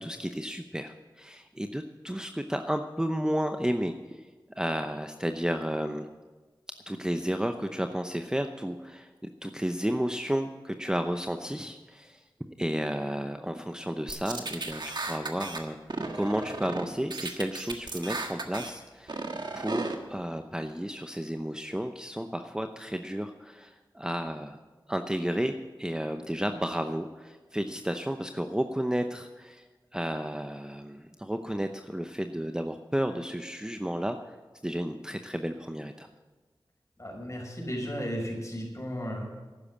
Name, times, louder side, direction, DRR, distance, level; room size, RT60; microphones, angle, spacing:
voice 1, 0.0-4.3 4.6-6.1 6.9-9.1 9.4-12.2 12.6-15.8 16.1-19.2 19.5-24.6 24.9-29.6 29.9-34.4 34.6-36.1, equal, 10° right, 6 dB, 0.8 m, -32 dB
sound 1, 14.1-15.6 15.9-16.8 17.1-18.7 19.1-19.9, right 3 dB, 60° right, 1.5 m, -35 dB
voice 2, 37.0-39.3, equal, 40° left, -1 dB, 5.7 m, -34 dB
12.0 x 9.8 x 7.3 m, 1.3 s
cardioid pair, 45°, 8 cm